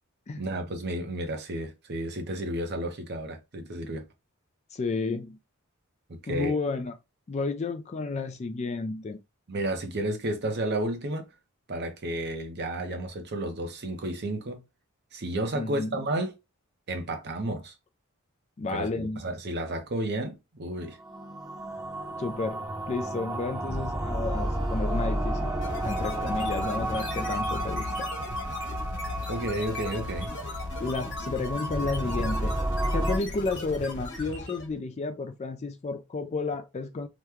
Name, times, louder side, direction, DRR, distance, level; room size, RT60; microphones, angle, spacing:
voice 1, 0.4-4.0 6.1-6.6 9.5-11.3 11.7-14.6 15.1-16.3 16.9-17.7 18.7-21.0 29.3-30.3, right 1 dB, 50° right, 0.7 m, -32 dB
voice 2, 4.7-5.4 6.3-6.9 7.3-9.2 15.5-16.0 18.6-19.2 22.2-25.5 25.8-28.1 30.8-32.6 32.9-37.1, left 3 dB, 30° left, 0.3 m, -32 dB
sound 1, 20.9-33.2, right 1 dB, 15° right, 0.8 m, -32 dB
sound 2, 25.5-31.4, left 4 dB, 90° left, 0.7 m, -40 dB
sound 3, 25.6-34.8, left 1 dB, 55° left, 1.3 m, -38 dB
2.9 x 2.2 x 3.4 m
head